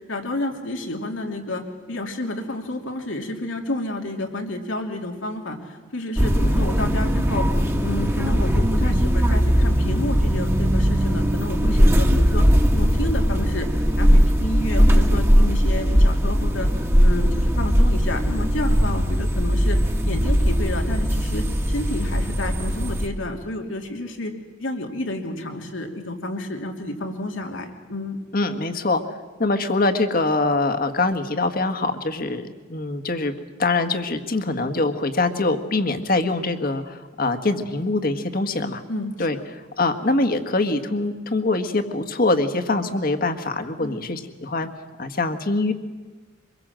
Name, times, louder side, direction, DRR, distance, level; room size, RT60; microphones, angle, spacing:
voice 1, 0.1-7.5 7.8-12.5 12.7-13.7 14.0-19.8 20.0-24.3 24.6-28.2 38.9-39.3 43.8-44.1, left 1 dB, 85° left, 3 dB, 3.0 m, -30 dB
sound 1, 6.2-23.1, equal, 15° right, 1.6 m, -19 dB
voice 2, 28.3-38.8 39.2-39.4 39.8-44.7 45.0-45.7, left 2 dB, 50° left, 8 dB, 1.7 m, -24 dB
25.0 x 22.0 x 7.6 m, 1.4 s
head